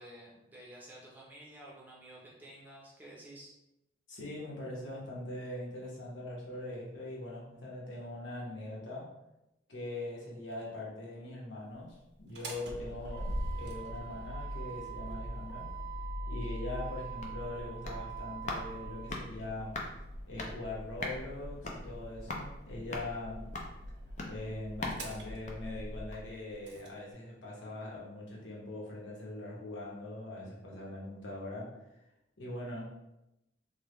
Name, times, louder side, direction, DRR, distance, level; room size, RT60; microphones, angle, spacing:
voice 1, 0.0-3.5, right 1 dB, 10° right, -5 dB, 0.6 m, -51 dB
voice 2, 4.1-9.1 9.7-15.7 16.3-19.8 20.3-23.4 24.2-31.8 32.4-33.0, left 2 dB, 85° left, -4 dB, 1.0 m, -42 dB
Motor vehicle (road), 12.2-26.9, right 1 dB, 65° right, 0.5 m, -42 dB
sound 1, 16.8-26.4 26.7-26.8, left 2 dB, 40° left, 0.4 m, -44 dB
3.4 x 2.2 x 3.1 m, 0.89 s
head